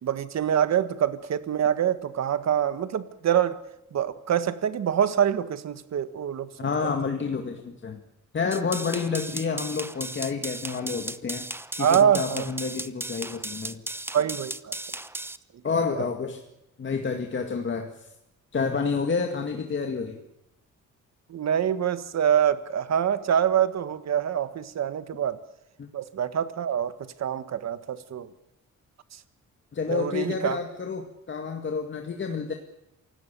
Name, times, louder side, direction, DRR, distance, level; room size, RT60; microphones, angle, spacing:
voice 1, 0.0-3.6 3.9-6.5 11.8-12.5 14.1-14.8 15.9-16.0 21.3-25.4 25.9-26.9 27.2-28.3 29.1-29.2 29.9-30.6, right 9 dB, 60° right, 12 dB, 1.6 m, -25 dB
voice 2, 6.6-8.0 8.3-11.4 11.8-13.8 15.6-16.4 16.8-18.1 18.5-20.2 25.8-25.9 29.7-32.5, left 5 dB, 40° left, 4 dB, 2.1 m, -29 dB
sound 1, 8.5-15.4, right 2 dB, 10° right, 0.9 m, -36 dB
27.5 x 17.0 x 6.9 m, 0.88 s
cardioid pair, 115°, 30 cm